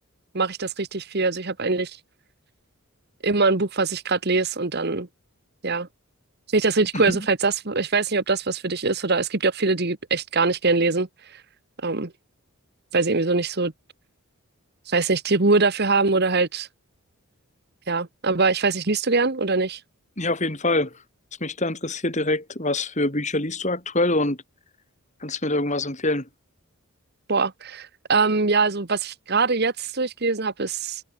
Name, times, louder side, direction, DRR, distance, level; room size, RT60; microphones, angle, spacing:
voice 1, 0.3-2.0 3.2-5.1 5.6-5.9 6.5-11.1 11.3-11.4 11.8-12.1 12.9-13.7 14.9-16.7 17.9-19.8 27.3-31.0, right 3 dB, 45° right, 1.3 m, -23 dB
voice 2, 20.2-20.9 21.4-24.4 25.2-26.3, left 2 dB, 30° left, 4.2 m, -25 dB
head